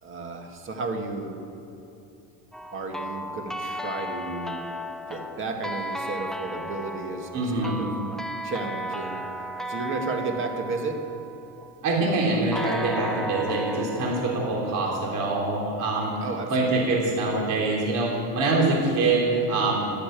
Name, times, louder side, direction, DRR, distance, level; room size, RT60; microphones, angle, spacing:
voice 1, 0.0-1.4 2.7-4.6 5.1-7.9 8.4-9.3 9.7-11.1 16.2-16.7 17.0-17.1, right 3 dB, 35° right, 4 dB, 1.9 m, -33 dB
sound 1, 2.5-11.7 12.5-15.4, right 1 dB, ahead, 0.5 m, -35 dB
voice 2, 7.3-7.9 11.8-16.1 16.5-19.9, right 2 dB, 55° right, -3 dB, 3.5 m, -24 dB
12.0 x 10.0 x 9.1 m, 2.8 s
cardioid pair, 135°, 37 cm